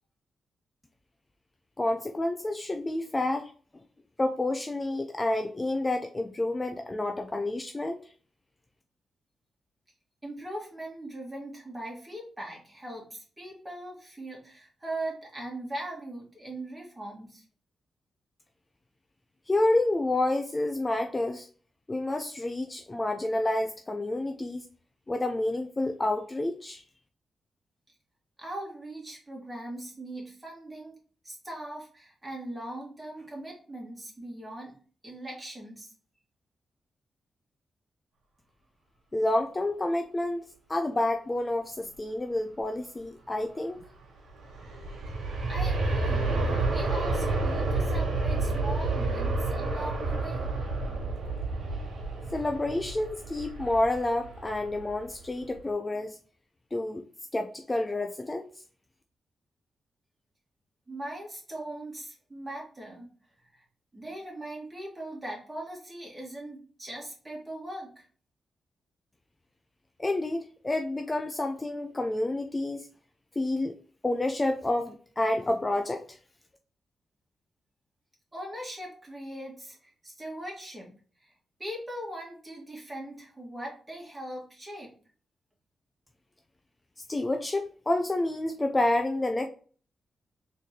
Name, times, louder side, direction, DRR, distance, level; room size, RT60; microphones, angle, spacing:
voice 1, 1.8-3.5 4.2-8.1 19.5-21.5 21.9-24.7 25.1-26.8 39.1-43.8 52.3-56.2 56.7-57.0 57.3-58.5 70.0-72.9 73.4-73.7 74.0-76.2 87.1-89.5, left 2 dB, 20° left, 5 dB, 0.3 m, -29 dB
voice 2, 10.2-17.4 28.4-31.0 31.2-34.7 35.0-35.9 45.5-50.4 60.9-63.1 63.5-63.6 63.9-68.1 78.3-80.9 81.2-81.3 81.6-84.9, right 1 dB, 15° right, -2 dB, 1.8 m, -40 dB
Aircraft, 44.3-55.1 55.6-55.7, right 3 dB, 85° right, 1.0 m, -30 dB
4.1 x 3.2 x 2.7 m, 0.42 s
cardioid pair, 100°, 0 cm